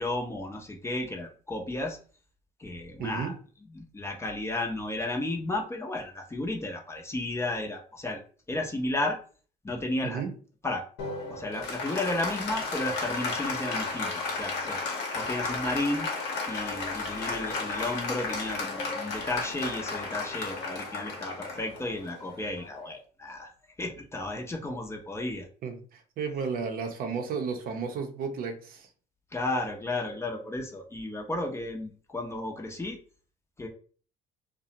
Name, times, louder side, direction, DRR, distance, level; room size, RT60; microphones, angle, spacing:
voice 1, 0.0-2.0 2.6-3.3 3.7-8.2 8.5-9.2 9.6-10.2 10.6-10.9 11.3-14.8 15.1-16.1 16.5-23.5 23.8-25.5 29.3-33.0 33.6-33.7, left 2 dB, 15° left, 2 dB, 0.5 m, -33 dB
voice 2, 3.0-3.3 10.0-10.3 25.6-28.9, right 5 dB, 60° right, 5 dB, 0.6 m, -33 dB
Applause, 11.0-22.9, left 3 dB, 85° left, 0.7 m, -34 dB
2.4 x 2.0 x 2.8 m, 0.40 s
cardioid pair, 110°, 17 cm